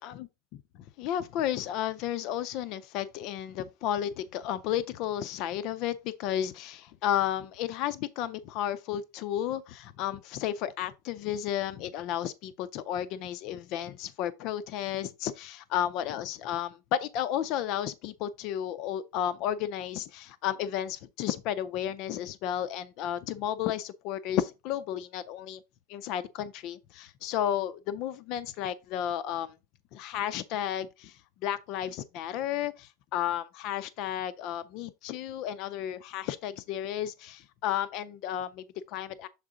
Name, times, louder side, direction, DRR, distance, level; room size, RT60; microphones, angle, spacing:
voice 1, 1.0-25.6 25.9-29.5 29.9-39.3, left 11 dB, 45° left, 0.4 m, -33 dB
7.3 x 3.7 x 3.7 m
supercardioid pair, 160°, 0 cm